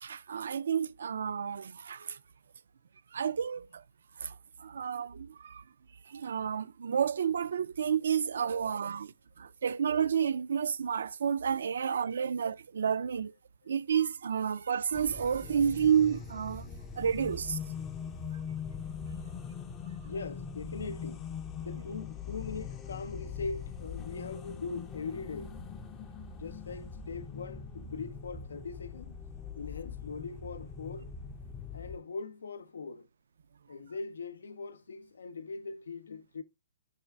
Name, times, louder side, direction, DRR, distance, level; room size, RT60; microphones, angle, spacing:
voice 1, 0.0-2.2 3.1-3.8 4.2-5.6 6.1-13.3 13.7-16.7 17.0-17.6, right 7 dB, 75° right, 0.3 m, -30 dB
sound 1, 14.9-32.0, left 6 dB, 20° left, 0.4 m, -42 dB
voice 2, 20.0-21.3 21.5-25.5 26.4-29.1 29.6-31.1 31.7-33.1 33.7-36.4, left 4 dB, 85° left, 0.5 m, -41 dB
5.4 x 2.4 x 3.3 m
hypercardioid pair, 155°, 0 cm